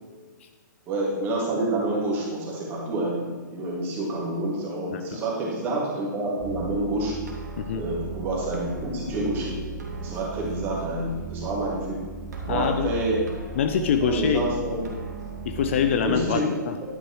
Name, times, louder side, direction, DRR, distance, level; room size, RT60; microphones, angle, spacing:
voice 1, 0.9-7.2 7.7-9.6 10.0-12.0 12.4-13.3 14.0-14.8 16.0-16.6, right 2 dB, 20° right, -3 dB, 2.2 m, -28 dB
voice 2, 4.9-5.2 7.6-7.8 12.5-12.9 13.6-14.5 15.4-16.8, left 7 dB, 40° left, 7 dB, 0.5 m, -25 dB
sound 1, 6.4-16.2, right 4 dB, 60° right, 1.8 m, -36 dB
11.0 x 8.7 x 3.1 m, 1.4 s
figure-of-eight pair, 125°, 10 cm